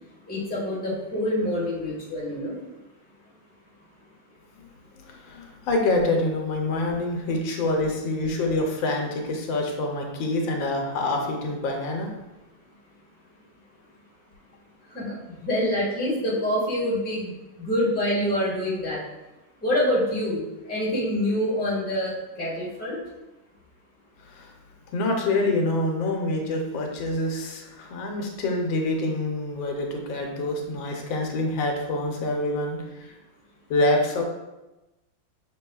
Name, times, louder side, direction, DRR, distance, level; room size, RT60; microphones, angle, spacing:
voice 1, 0.3-2.6 14.9-19.0 19.6-23.0, left 1 dB, 5° left, -6 dB, 1.1 m, -26 dB
voice 2, 4.9-12.1 24.2-24.5 24.9-33.1 33.7-34.2, left 2 dB, 85° left, 1 dB, 1.5 m, -26 dB
6.1 x 3.5 x 2.3 m, 1.0 s
omnidirectional pair, 2.1 m